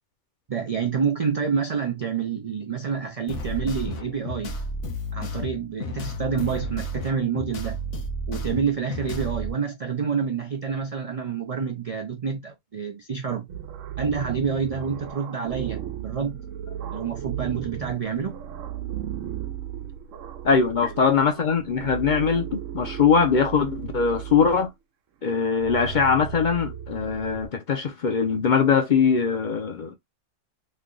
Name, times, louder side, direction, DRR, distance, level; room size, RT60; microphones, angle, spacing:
voice 1, 0.5-4.5 5.1-7.8 8.3-13.5 14.0-16.4 16.9-18.4 20.8-20.9, right 6 dB, 55° right, 0.4 m, -28 dB
sound 1, 3.3-9.5, equal, 75° left, 1.1 m, -32 dB
sound 2, 13.5-24.7 25.4-27.5, right 10 dB, 85° right, 1.0 m, -35 dB
voice 2, 20.4-24.7 25.2-29.9, left 6 dB, 50° left, 0.7 m, -22 dB
3.3 x 2.2 x 3.7 m
omnidirectional pair, 1.3 m